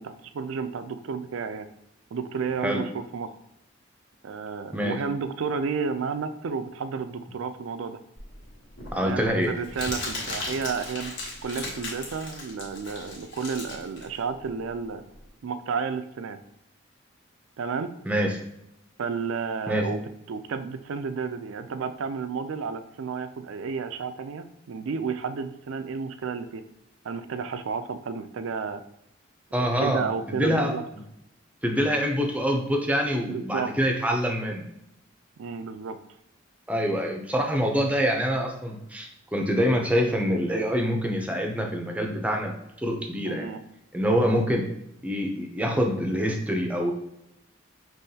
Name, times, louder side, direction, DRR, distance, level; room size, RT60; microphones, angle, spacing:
voice 1, 0.0-1.7 2.1-3.3 4.2-8.0 9.0-11.1 11.4-15.0 15.4-16.4 17.6-17.9 19.0-20.0 20.3-26.6 27.0-28.8 29.6-30.8 33.3-33.7 35.4-36.0 43.3-43.6, right 5 dB, 80° right, 10 dB, 0.4 m, -32 dB
Crumpling crinkling, 8.2-15.2, left 2 dB, 60° left, 1.3 m, -37 dB
voice 2, 8.9-9.5 18.1-18.4 19.7-19.9 29.5-30.7 31.6-34.6 36.7-42.5 42.8-43.5 43.9-44.7 45.0-46.9, equal, 5° right, 1 dB, 0.5 m, -25 dB
5.5 x 3.0 x 2.8 m, 0.81 s
head